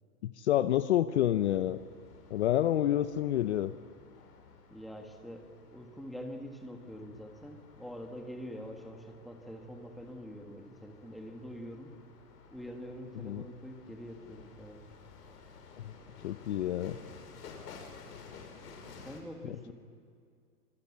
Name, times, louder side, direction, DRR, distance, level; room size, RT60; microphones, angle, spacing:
voice 1, 0.2-1.8 2.3-3.7 13.2-13.4 16.2-17.0 19.5-19.6, left 12 dB, 45° left, 12 dB, 0.8 m, -28 dB
sound 1, 1.1-19.2, left 5 dB, 75° left, 5.9 m, -54 dB
voice 2, 4.7-11.9 12.5-14.8 18.9-19.7, equal, ahead, 3 dB, 1.6 m, -45 dB
26.5 x 25.5 x 8.5 m, 2.3 s
hypercardioid pair, 160°, 47 cm